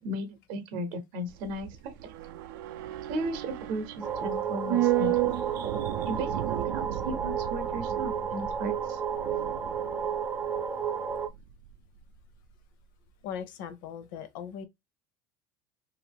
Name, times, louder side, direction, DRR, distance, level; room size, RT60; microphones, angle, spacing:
voice 1, 0.0-2.1 3.1-5.4 6.1-9.0, right 1 dB, 55° right, 0.7 m, -36 dB
sound 1, 1.3-11.8 12.0-12.1, right 14 dB, 85° right, 0.4 m, -33 dB
sound 2, 4.0-11.3, right 7 dB, 10° right, 0.4 m, -32 dB
voice 2, 13.2-14.6, left 8 dB, 75° left, 0.7 m, -39 dB
2.8 x 2.5 x 3.3 m
cardioid pair, 150°, 11 cm